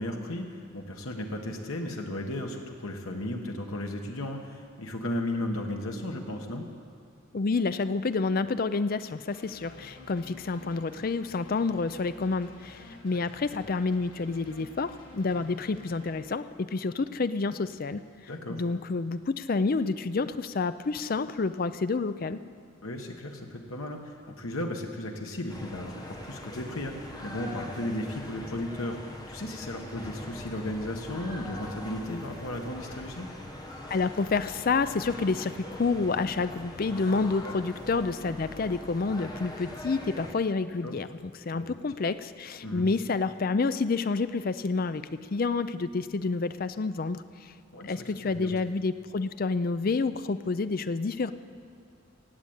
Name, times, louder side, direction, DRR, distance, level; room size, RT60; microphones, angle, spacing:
voice 1, 0.0-6.7 18.3-18.6 22.8-29.0 29.3-33.3 37.4-37.5 40.8-41.0 41.5-41.7 42.6-42.9 47.7-48.0 48.2-48.5, left 1 dB, 85° left, 2 dB, 1.4 m, -35 dB
voice 2, 7.3-18.0 18.5-22.4 33.9-41.1 41.5-47.5 47.8-51.3, left 4 dB, 45° left, 13 dB, 0.5 m, -29 dB
sound 1, 9.3-16.2, left 1 dB, 60° left, 4.2 m, -51 dB
sound 2, 25.5-40.3, left 1 dB, 20° left, 1.3 m, -42 dB
16.5 x 7.8 x 8.7 m, 2.4 s
head